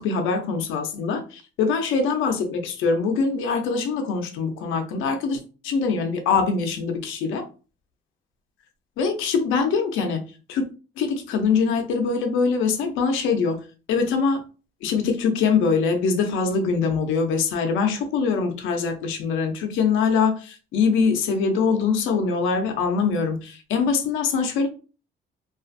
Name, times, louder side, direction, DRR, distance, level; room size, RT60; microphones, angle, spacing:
voice 1, 0.0-7.4 9.0-10.2 10.5-10.6 11.0-13.6 13.9-14.4 14.8-24.7, left 5 dB, 90° left, 0.5 m, -23 dB
2.4 x 2.3 x 2.5 m
cardioid pair, 90°, 20 cm